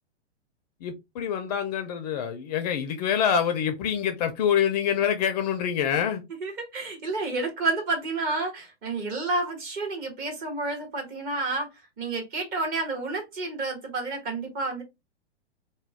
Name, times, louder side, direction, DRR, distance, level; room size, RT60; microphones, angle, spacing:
voice 1, 0.8-6.2, left 8 dB, 40° left, 0.5 m, -26 dB
voice 2, 6.4-11.7 12.0-14.8, right 3 dB, 25° right, 1.2 m, -30 dB
3.0 x 2.2 x 3.4 m
hypercardioid pair, 125°, 33 cm